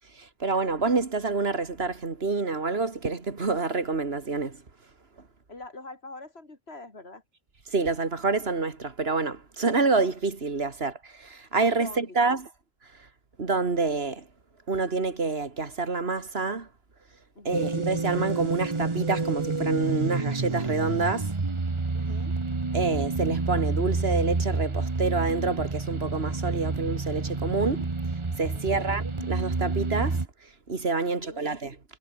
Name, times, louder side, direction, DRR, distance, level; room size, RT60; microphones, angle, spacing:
voice 1, 0.1-4.6 7.7-12.5 13.4-14.3 14.7-16.7 17.4-21.3 22.7-27.9 28.4-30.2 30.7-31.8, right 3 dB, 75° right, 2.5 m, -27 dB
voice 2, 5.5-7.2 11.8-12.2 17.4-17.7 21.9-22.3 28.5-28.9 31.0-31.5, left 2 dB, 80° left, 3.8 m, -44 dB
sound 1, 17.5-30.3, right 3 dB, 30° right, 1.2 m, -29 dB
omnidirectional pair, 1.0 m